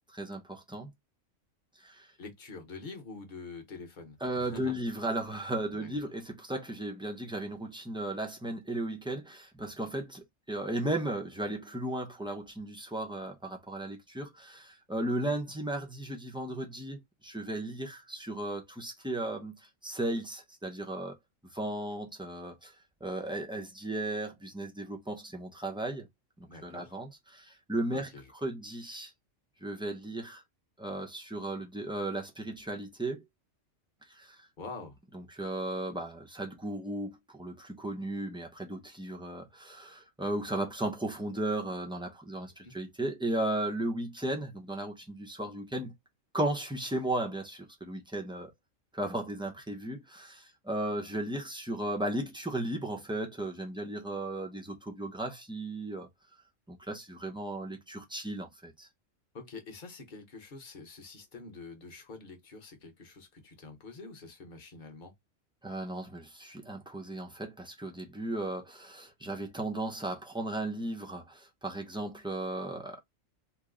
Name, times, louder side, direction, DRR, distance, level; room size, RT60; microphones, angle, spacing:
voice 1, 0.1-0.9 1.8-2.1 4.2-21.2 21.5-22.7 23.0-26.1 26.4-28.1 28.4-29.1 29.6-30.4 30.8-33.2 34.1-34.5 35.1-45.9 46.3-48.5 48.9-56.1 56.7-58.9 65.6-73.0, right 1 dB, 5° right, 0.4 m, -35 dB
voice 2, 2.2-4.8 5.7-6.0 26.5-27.0 27.9-28.3 34.6-35.0 42.6-42.8 59.3-65.1, left 4 dB, 40° left, 0.9 m, -46 dB
3.0 x 2.0 x 3.6 m
omnidirectional pair, 1.4 m